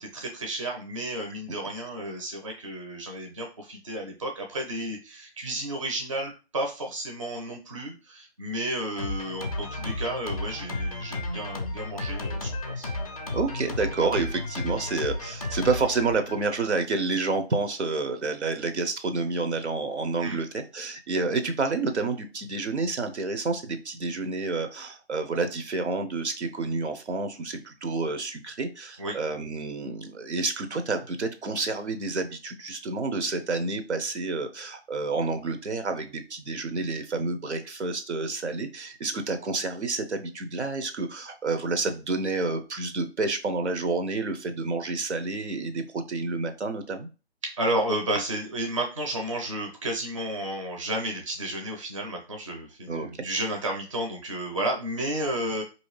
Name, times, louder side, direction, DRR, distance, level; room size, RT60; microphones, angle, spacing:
voice 1, 0.0-12.5 12.8-12.9 20.2-20.4 29.0-29.1 47.6-55.6, right 1 dB, 30° right, 1 dB, 0.6 m, -32 dB
Drum kit, 9.0-16.8, left 2 dB, 35° left, 0.4 m, -33 dB
voice 2, 13.3-47.1 52.9-53.1, right 3 dB, 75° right, 8 dB, 0.8 m, -29 dB
4.2 x 2.7 x 3.1 m, 0.33 s
figure-of-eight pair, 150°, 34 cm